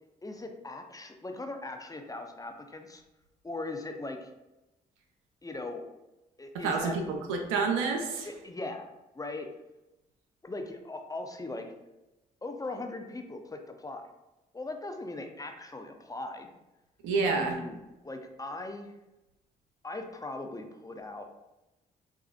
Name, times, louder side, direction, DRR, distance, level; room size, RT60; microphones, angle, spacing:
voice 1, 0.2-3.0 3.4-4.3 5.4-5.8 6.4-7.0 8.2-8.9 9.1-9.5 10.4-11.7 12.4-14.1 14.5-16.5 17.2-18.9 19.8-21.2, left 2 dB, 20° left, 5 dB, 0.5 m, -39 dB
voice 2, 6.5-8.3 17.0-17.6, right 4 dB, 90° right, 3 dB, 0.5 m, -28 dB
4.3 x 2.4 x 2.4 m, 0.99 s
hypercardioid pair, 50°, 20 cm